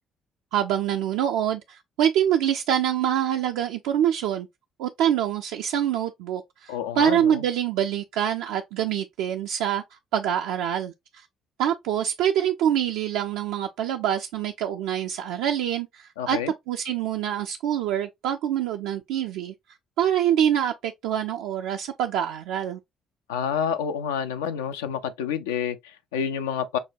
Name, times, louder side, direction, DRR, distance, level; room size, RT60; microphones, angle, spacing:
voice 1, 0.5-4.5 4.8-11.3 11.6-19.5 20.0-22.8, right 10 dB, 70° right, 0.3 m, -25 dB
voice 2, 6.7-7.4 16.2-16.5 23.3-26.8, left 8 dB, 80° left, 0.3 m, -28 dB
6.0 x 2.2 x 2.5 m
figure-of-eight pair, 50°, 0 cm